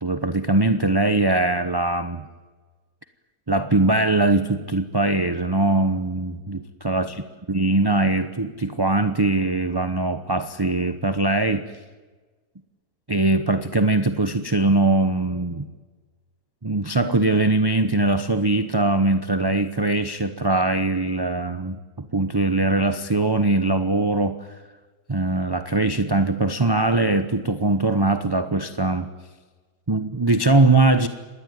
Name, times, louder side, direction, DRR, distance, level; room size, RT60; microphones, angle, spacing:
voice 1, 0.0-2.3 3.5-7.2 7.5-11.7 13.1-15.7 16.6-24.4 25.1-29.1 29.9-31.1, right 2 dB, 20° right, 10 dB, 0.8 m, -21 dB
26.5 x 19.5 x 9.4 m, 1.3 s
omnidirectional pair, 1.7 m